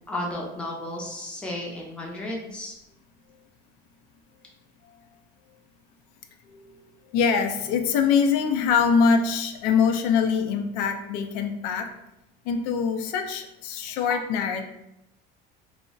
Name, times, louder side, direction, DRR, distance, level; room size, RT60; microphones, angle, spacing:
voice 1, 0.1-2.8, left 1 dB, 5° left, -2 dB, 0.4 m, -33 dB
voice 2, 6.5-11.9 12.5-14.7, left 6 dB, 90° left, 5 dB, 0.4 m, -24 dB
2.3 x 2.0 x 3.7 m, 0.88 s
cardioid pair, 155°, 20 cm